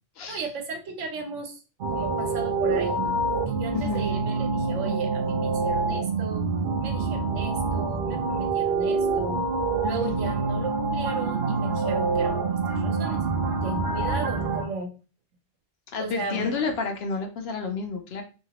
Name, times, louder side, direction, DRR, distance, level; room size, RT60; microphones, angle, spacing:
voice 1, 0.3-1.6 1.9-6.5 6.8-9.4 9.8-13.2 13.6-14.9 16.0-16.6, right 4 dB, 80° right, 5 dB, 1.0 m, -35 dB
sound 1, 1.8-14.6, right 3 dB, 60° right, 0.6 m, -26 dB
voice 2, 3.7-4.1 10.0-10.3 15.9-18.2, left 4 dB, 65° left, 5 dB, 0.7 m, -30 dB
2.8 x 2.8 x 2.9 m, 0.34 s
omnidirectional pair, 1.2 m